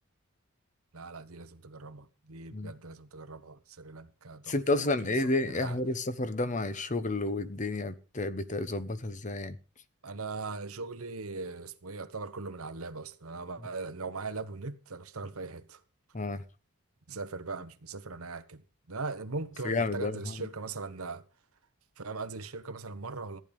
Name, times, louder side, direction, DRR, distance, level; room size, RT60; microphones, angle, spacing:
voice 1, 0.9-5.8 10.0-15.8 17.1-18.6 18.9-21.2 22.0-23.4, right 3 dB, 85° right, 1.2 m, -40 dB
voice 2, 4.5-9.6 16.1-16.4 19.6-20.5, left 2 dB, 35° left, 0.9 m, -31 dB
14.5 x 10.5 x 5.3 m
head